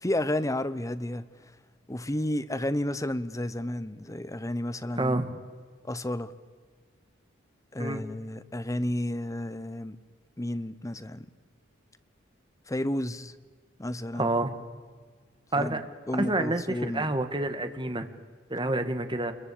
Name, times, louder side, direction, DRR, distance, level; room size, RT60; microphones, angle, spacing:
voice 1, 0.0-1.2 1.9-5.2 5.8-6.3 7.7-10.0 10.4-11.3 12.7-13.3 13.8-14.3 15.5-15.8 16.1-17.1, left 1 dB, 15° left, 1.0 m, -31 dB
voice 2, 4.9-5.4 7.8-8.0 14.1-14.5 15.5-15.8 16.1-18.1 18.5-19.3, right 2 dB, 25° right, 1.8 m, -28 dB
28.0 x 22.5 x 8.6 m
head